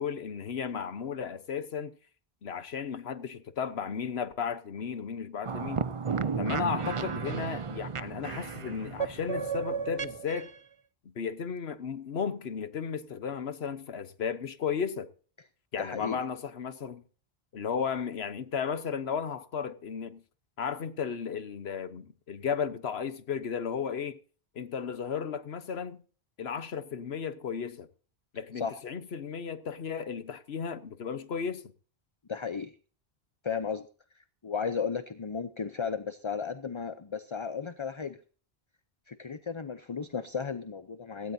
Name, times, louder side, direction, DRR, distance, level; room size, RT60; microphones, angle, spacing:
voice 1, 0.0-2.0 2.4-5.8 6.4-10.5 11.0-15.1 15.7-17.0 17.5-20.2 20.6-24.2 24.5-26.0 26.4-27.9 28.3-31.6, left 7 dB, 80° left, 1.3 m, -34 dB
sound 1, 5.4-10.6, right 6 dB, 35° right, 0.6 m, -33 dB
voice 2, 15.8-16.2 28.6-28.8 32.3-32.7 33.4-33.9 34.4-38.2 39.1-41.3, left 6 dB, 30° left, 0.7 m, -34 dB
17.0 x 17.0 x 2.8 m
omnidirectional pair, 1.1 m